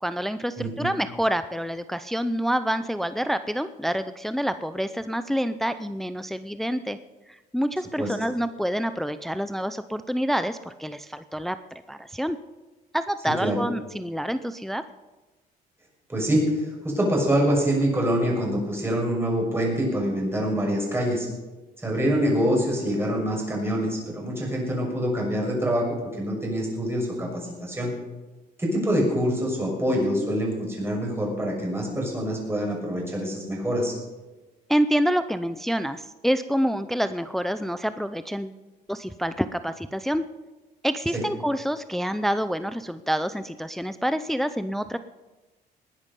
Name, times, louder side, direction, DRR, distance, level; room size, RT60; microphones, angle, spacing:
voice 1, 0.0-7.0 7.3-11.6 11.9-12.4 12.9-14.8 34.7-38.6 38.9-40.2 40.8-45.0, equal, ahead, 11 dB, 0.5 m, -27 dB
voice 2, 0.6-0.9 8.0-8.1 13.4-13.6 16.1-21.3 21.8-25.8 26.2-27.9 28.6-33.9 41.1-41.2, equal, 15° right, -1 dB, 6.4 m, -25 dB
20.0 x 11.0 x 5.4 m, 1.1 s
cardioid pair, 110°, 17 cm